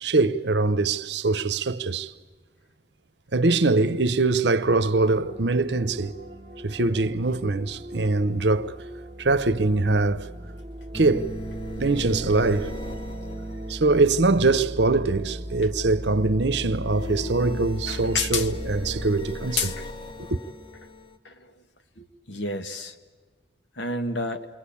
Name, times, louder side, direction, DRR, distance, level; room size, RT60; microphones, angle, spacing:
voice 1, 0.0-2.1 3.3-6.1 6.6-8.7 9.2-10.3 10.9-11.4 11.8-12.7 13.7-19.7 20.3-20.4, right 3 dB, 70° right, 0.9 m, -23 dB
sound 1, 4.6-19.1, equal, 30° right, 1.9 m, -38 dB
sound 2, 10.9-14.4 16.8-21.2, left 1 dB, 30° left, 1.1 m, -38 dB
voice 2, 17.9-18.5 19.6-19.7 21.2-21.3 22.0-22.9 23.8-24.5, left 3 dB, 85° left, 1.7 m, -29 dB
28.0 x 23.0 x 8.5 m
head